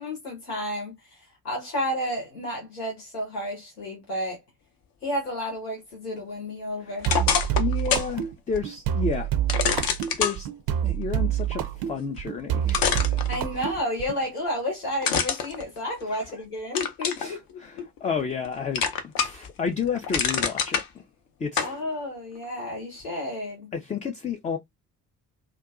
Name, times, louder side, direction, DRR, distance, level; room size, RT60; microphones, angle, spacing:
voice 1, 0.0-4.4 5.0-7.1 13.3-17.8 21.6-23.7, left 1 dB, 85° left, 1.0 m, -31 dB
sound 1, 7.0-8.1 8.6-8.7 9.5-10.4 12.2-12.3 12.7-13.8 15.0-16.3 16.8-17.3 17.8-18.5 18.8-19.5 19.8-20.9 21.6-21.8, left 7 dB, 50° left, 0.7 m, -26 dB
sound 2, 7.1-14.2, right 11 dB, 55° right, 0.5 m, -27 dB
voice 2, 7.6-9.3 10.2-10.5 10.8-13.2 16.1-16.3 17.2-21.0 21.4-21.6 23.7-24.6, left 6 dB, 15° left, 0.4 m, -31 dB
2.6 x 2.2 x 2.3 m
figure-of-eight pair, 40°, 45 cm